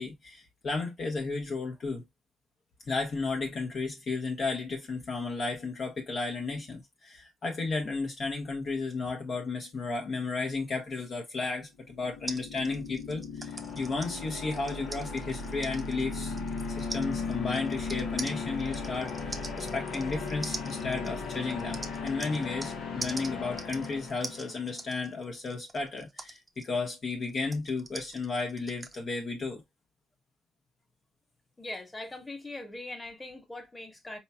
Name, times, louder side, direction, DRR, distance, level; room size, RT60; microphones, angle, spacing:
voice 1, 0.0-2.0 2.9-16.4 16.7-29.6, left 3 dB, 50° left, 1.1 m, -33 dB
sound 1, 11.8-24.8, left 4 dB, 80° left, 1.2 m, -37 dB
sound 2, 12.3-22.7 23.0-29.0, right 2 dB, 20° right, 0.7 m, -43 dB
voice 2, 31.6-34.2, left 2 dB, 20° left, 1.5 m, -41 dB
4.3 x 3.1 x 2.2 m
cardioid pair, 90°, 0 cm